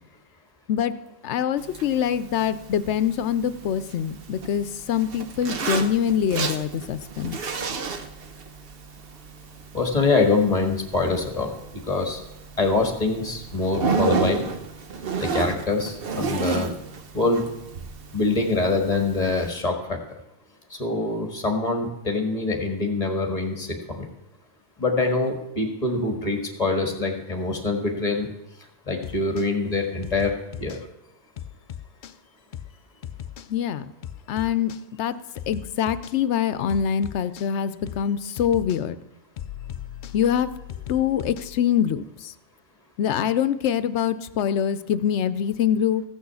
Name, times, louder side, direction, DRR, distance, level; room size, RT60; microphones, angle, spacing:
voice 1, 1.2-7.4 33.5-33.9 34.3-34.7 35.0-35.2 35.5-39.0 40.1-40.5 40.9-42.3 43.0-46.0, left 9 dB, 80° left, 14 dB, 0.9 m, -24 dB
Zipper (clothing), 1.6-19.5, right 4 dB, 60° right, 1.0 m, -32 dB
voice 2, 9.7-12.2 12.6-14.4 15.2-16.7 17.1-17.5 18.1-20.0 20.7-24.1 24.8-28.3 28.9-30.3 30.6-30.8, left 3 dB, 35° left, 3 dB, 1.8 m, -24 dB
sound 1, 29.0-29.5 30.0-30.8 31.4-32.2 32.5-32.7 33.0-33.5 34.0-34.8 35.4-36.2 36.7-37.5 37.9-38.1 38.4-38.8 39.4-41.6, left 10 dB, 55° left, 0.6 m, -38 dB
15.5 x 6.4 x 7.0 m, 0.90 s
omnidirectional pair, 1.2 m